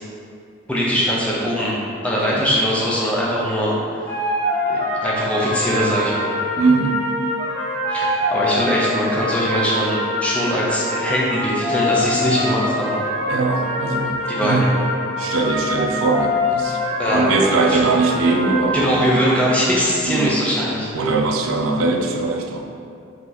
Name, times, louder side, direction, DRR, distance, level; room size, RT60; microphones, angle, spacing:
voice 1, 0.7-1.8 2.0-3.7 4.7-6.3 7.9-13.0 14.4-14.7 17.0-17.3 17.6-17.8 18.7-20.9, equal, 5° left, -6 dB, 0.5 m, -21 dB
sound 1, 4.0-19.1, left 1 dB, 30° left, 1.2 m, -24 dB
voice 2, 6.6-7.1 13.3-14.7 15.2-16.8 17.1-19.2 20.0-20.4 20.9-22.6, right 3 dB, 85° right, 3 dB, 0.4 m, -21 dB
2.9 x 2.5 x 3.8 m, 2.5 s
head